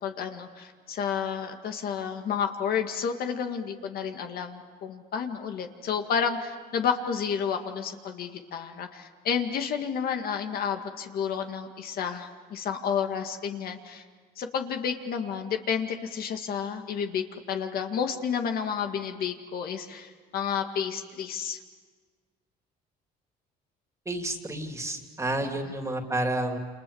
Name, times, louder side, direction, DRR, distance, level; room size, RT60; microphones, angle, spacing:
voice 1, 0.0-14.0 14.4-21.6, left 7 dB, 65° left, 5 dB, 2.0 m, -31 dB
voice 2, 24.0-26.6, right 1 dB, 15° right, 4 dB, 2.9 m, -30 dB
29.0 x 27.0 x 7.1 m, 1.5 s
cardioid pair, 110°, 17 cm